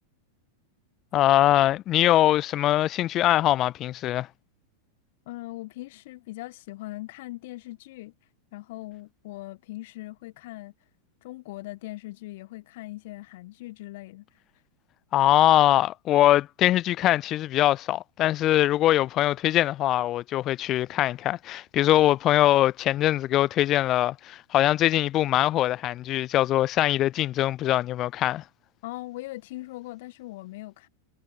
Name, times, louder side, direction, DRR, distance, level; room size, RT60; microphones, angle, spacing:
voice 1, 1.1-4.3 15.1-28.4, left 14 dB, 35° left, 0.3 m, -22 dB
voice 2, 5.3-8.1 8.5-10.7 11.2-14.3 28.8-30.9, left 19 dB, 50° left, 0.8 m, -40 dB
figure-of-eight pair, 90°, 0 cm